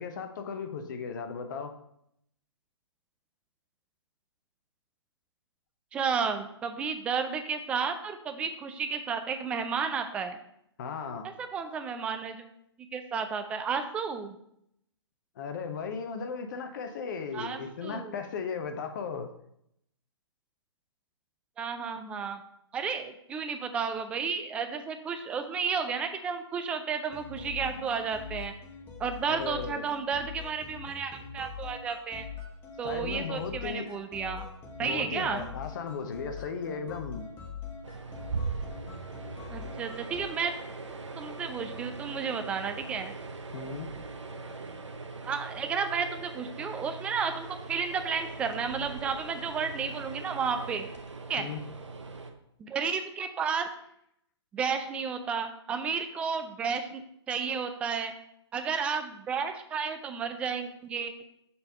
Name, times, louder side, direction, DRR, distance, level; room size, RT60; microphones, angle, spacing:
voice 1, 0.0-1.7 10.8-11.3 15.4-19.3 29.2-29.8 32.8-33.9 34.8-37.3 43.5-43.9 51.4-51.6, left 5 dB, 40° left, 6 dB, 0.8 m, -36 dB
voice 2, 5.9-10.4 11.4-12.4 12.9-14.4 17.3-18.1 21.6-22.4 22.7-28.5 29.0-32.3 32.8-34.5 34.8-35.5 39.5-40.5 41.2-43.1 45.2-50.8 51.3-51.5 52.6-53.7 54.5-57.0 57.3-58.1 58.5-61.1, right 6 dB, 10° right, 7 dB, 0.3 m, -32 dB
sound 1, 27.1-40.3, left 6 dB, 15° left, 0.9 m, -43 dB
sound 2, 37.8-52.3, right 4 dB, 75° right, 0.9 m, -40 dB
6.9 x 3.4 x 5.5 m, 0.74 s
figure-of-eight pair, 130°, 15 cm